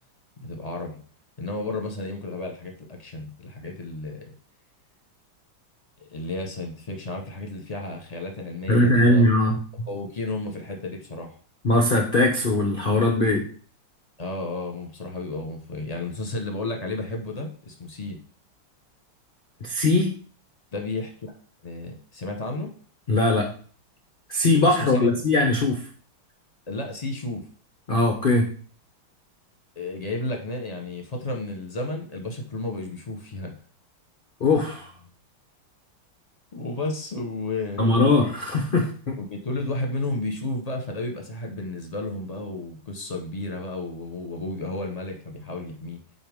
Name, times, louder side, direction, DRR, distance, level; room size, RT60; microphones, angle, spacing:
voice 1, 0.4-1.0 1.4-4.3 6.0-9.2 9.9-11.4 14.2-18.2 20.7-21.3 21.6-22.7 24.7-25.1 26.7-27.4 29.7-33.5 36.5-38.2 39.2-46.0, left 2 dB, 30° left, 2 dB, 0.8 m, -32 dB
voice 2, 8.7-9.9 11.6-13.5 19.6-20.2 23.1-23.5 24.3-25.9 27.9-28.5 34.4-34.9 37.8-39.2, left 2 dB, 85° left, 3 dB, 0.4 m, -21 dB
8.7 x 4.3 x 3.6 m, 0.43 s
omnidirectional pair, 2.3 m